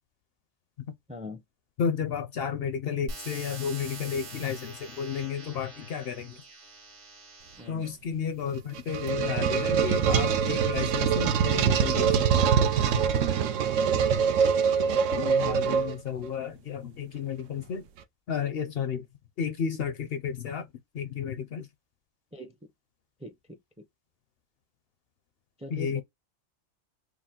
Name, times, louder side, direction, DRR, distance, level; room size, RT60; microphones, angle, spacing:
voice 1, 1.1-1.4 7.6-7.8 14.3-14.4 22.3-22.5 23.2-23.3 25.6-26.0, left 2 dB, 10° right, 0.4 m, -40 dB
voice 2, 1.8-6.4 7.7-13.1 14.8-17.8 18.3-19.1 19.4-20.7 20.9-21.7 25.7-26.0, left 7 dB, 65° left, 0.7 m, -32 dB
sound 1, 3.1-7.8 8.5-9.1, right 2 dB, 70° right, 1.9 m, -44 dB
sound 2, 8.5-16.3, right 7 dB, 90° right, 1.0 m, -24 dB
4.8 x 2.0 x 3.7 m
omnidirectional pair, 1.3 m